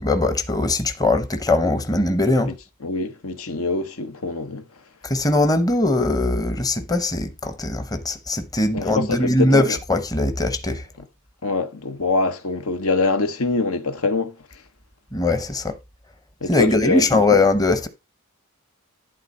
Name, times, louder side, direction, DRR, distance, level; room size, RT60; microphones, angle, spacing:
voice 1, 0.0-2.5 5.0-10.9 15.1-15.7 16.5-17.9, left 2 dB, 15° left, 0.9 m, -20 dB
voice 2, 2.8-4.6 8.7-9.8 11.4-14.3 16.4-17.1, left 3 dB, 75° left, 1.2 m, -24 dB
11.5 x 3.8 x 5.4 m
head